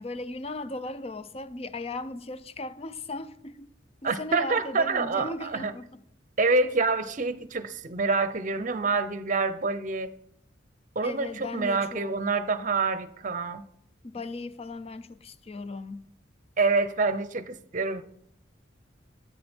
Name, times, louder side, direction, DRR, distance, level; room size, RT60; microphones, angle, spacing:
voice 1, 0.0-3.7 4.0-6.0 11.0-12.2 14.0-16.1, left 2 dB, 35° left, 0.5 m, -37 dB
voice 2, 4.0-5.7 6.4-10.1 11.0-13.6 16.6-18.0, right 3 dB, 40° right, 0.7 m, -27 dB
13.0 x 8.4 x 4.4 m
head